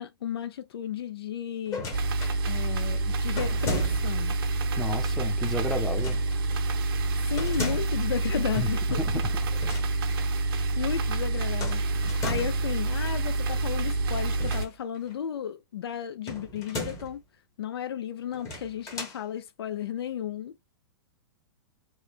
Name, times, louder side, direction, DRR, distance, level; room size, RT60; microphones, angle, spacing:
voice 1, 0.0-1.8 2.5-4.3 7.3-9.0 10.3-17.2 17.6-20.5, left 9 dB, 85° left, 0.5 m, -34 dB
sound 1, 1.6-2.4 3.4-4.3 5.9-6.4 7.4-8.1 9.5-9.9 10.2-10.3 11.6-12.7 14.3-15.1 16.3-17.2 18.3-19.2, left 1 dB, 25° left, 1.1 m, -36 dB
sound 2, 1.9-14.7, right 2 dB, 70° right, 0.6 m, -27 dB
voice 2, 4.8-6.2 8.6-8.7 9.0-9.3, left 1 dB, ahead, 0.6 m, -32 dB
3.1 x 2.2 x 2.3 m
hypercardioid pair, 135°, 13 cm